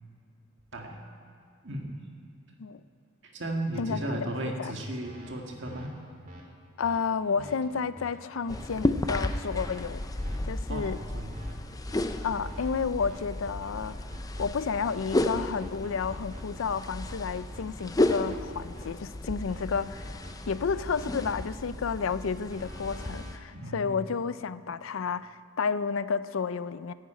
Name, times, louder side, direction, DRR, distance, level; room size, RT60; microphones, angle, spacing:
voice 1, 1.6-2.0 3.2-5.9 7.3-7.8 10.7-11.4 23.5-24.0, right 1 dB, 60° right, 1 dB, 1.9 m, -35 dB
voice 2, 3.8-4.3 4.6-4.7 6.8-10.0 10.5-11.0 12.2-14.0 14.4-20.2 20.5-26.9, left 5 dB, 90° left, 15 dB, 0.5 m, -31 dB
sound 1, 5.0-5.3 5.7-5.9 6.3-6.4 6.8-7.0 7.4-7.5 8.0-8.1 8.5-8.7 9.0-9.3 9.6-9.8 10.2-10.4 10.7-10.9 11.3-11.5 11.9-12.1 12.4-12.7 13.0-13.2 13.6-14.4 14.8-16.6 17.0-18.9 19.5-21.3 22.5-23.3, right 1 dB, 40° right, 2.1 m, -46 dB
sound 2, 8.5-23.4, left 1 dB, 20° left, 0.5 m, -33 dB
10.5 x 10.5 x 8.9 m, 2.4 s
head